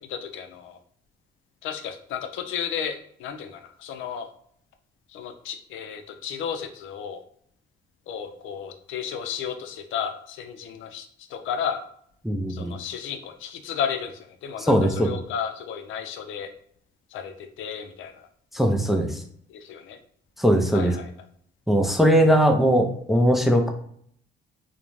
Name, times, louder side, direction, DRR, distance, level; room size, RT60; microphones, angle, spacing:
voice 1, 0.1-0.8 1.6-4.3 5.1-7.2 8.1-11.8 12.5-16.5 17.1-18.3 19.5-20.0 20.7-21.1, left 8 dB, 80° left, 6 dB, 0.4 m, -33 dB
voice 2, 12.2-12.7 14.7-15.1 18.5-19.2 20.4-20.9 21.7-23.7, equal, ahead, 3 dB, 0.4 m, -20 dB
2.4 x 2.1 x 3.0 m, 0.63 s
cardioid pair, 90°, 20 cm